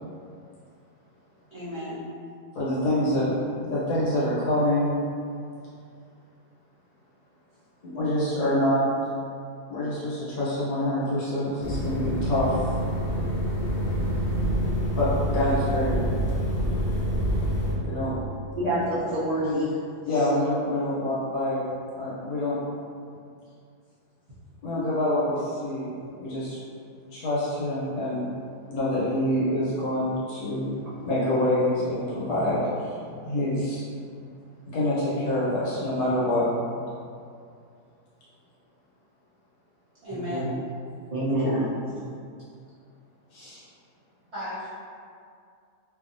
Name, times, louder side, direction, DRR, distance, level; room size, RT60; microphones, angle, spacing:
voice 1, 1.5-2.0 40.0-40.5 44.3-44.7, left 1 dB, 50° right, -13 dB, 1.0 m, -34 dB
voice 2, 2.5-3.3 3.6-5.0 7.8-8.8 9.7-12.7 14.9-16.1 17.8-18.2 20.0-21.7 22.0-22.6 24.6-26.6 27.1-28.4 28.7-33.8 34.6-36.5 43.3-43.6, left 1 dB, 70° left, -9 dB, 1.4 m, -26 dB
sound 1, 11.6-17.7, equal, 90° left, 0.6 m, -26 dB
voice 3, 18.5-19.7 40.1-40.4 41.1-41.7, right 1 dB, 70° right, -13 dB, 0.3 m, -26 dB
2.7 x 2.6 x 2.5 m, 2.3 s
omnidirectional pair, 1.7 m